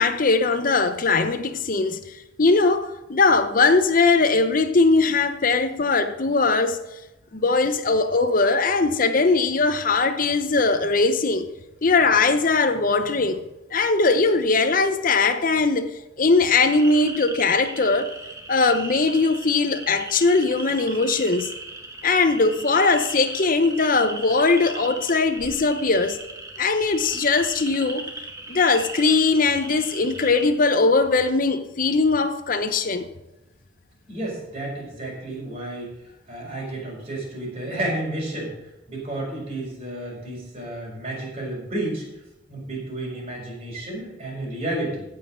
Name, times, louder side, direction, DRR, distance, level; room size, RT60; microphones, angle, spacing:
voice 1, 0.0-2.0 2.4-6.8 7.3-11.5 11.8-13.4 13.7-15.9 16.2-18.1 18.5-21.5 22.0-26.2 26.6-28.1 28.5-33.1, left 3 dB, 45° left, 0.8 m, -20 dB
sound 1, 16.5-30.5, right 2 dB, 15° right, 1.4 m, -37 dB
voice 2, 34.1-35.9 36.3-38.5 38.9-42.0 42.5-45.0, right 1 dB, 35° right, 5.4 m, -31 dB
15.5 x 5.8 x 6.3 m
head